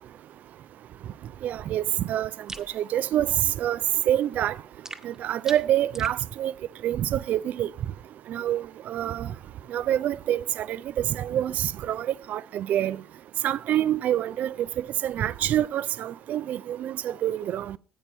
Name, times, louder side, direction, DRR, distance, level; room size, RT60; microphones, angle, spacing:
voice 1, 1.4-2.3 2.6-4.6 5.0-6.5 6.8-7.7 8.3-9.3 9.7-13.0 13.4-17.8, right 11 dB, 50° right, 0.4 m, -27 dB
sound 1, 2.5-2.7 4.8-6.2, right 2 dB, 15° right, 1.2 m, -41 dB
16.0 x 8.8 x 3.0 m
figure-of-eight pair, 55°, 3 cm